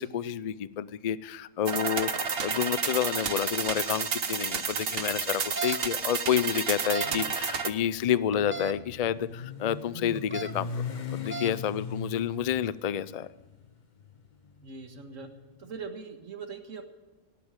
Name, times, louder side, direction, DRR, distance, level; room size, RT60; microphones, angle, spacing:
voice 1, 0.0-10.7 11.1-13.3, left 9 dB, 90° left, 17 dB, 0.3 m, -29 dB
sound 1, 1.7-7.7, right 5 dB, 50° right, 1.2 m, -31 dB
sound 2, 5.3-5.8 6.7-7.1 8.3-8.7 10.2-10.5 11.1-11.5, right 4 dB, 15° right, 0.5 m, -35 dB
Motorcycle, 7.5-15.7, left 5 dB, 40° left, 0.9 m, -40 dB
voice 2, 14.6-15.3 15.6-16.9, right 5 dB, 70° right, 5 dB, 2.1 m, -41 dB
18.5 x 8.5 x 9.0 m, 1.2 s
omnidirectional pair, 1.4 m